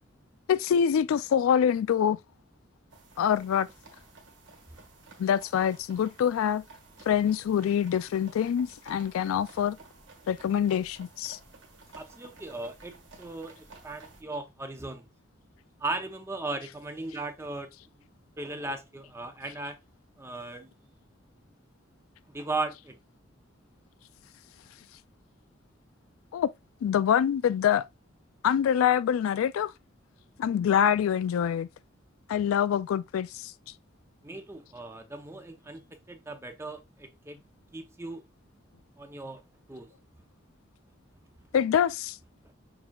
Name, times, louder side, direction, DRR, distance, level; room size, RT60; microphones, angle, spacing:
voice 1, 0.5-2.2 3.2-3.7 5.2-6.6 7.1-9.8 10.3-11.4 26.3-26.5 26.8-27.9 28.4-29.7 30.4-31.7 32.3-33.5 41.5-42.2, left 8 dB, 85° left, 0.3 m, -25 dB
sound 1, 2.9-14.2, right 3 dB, 65° right, 1.3 m, -53 dB
voice 2, 12.0-15.1 15.8-17.7 18.4-19.8 20.2-20.7 22.3-23.0 34.2-37.4 37.7-38.2 39.0-39.4 39.7-39.9, right 2 dB, 15° right, 0.5 m, -37 dB
5.9 x 3.6 x 2.3 m
head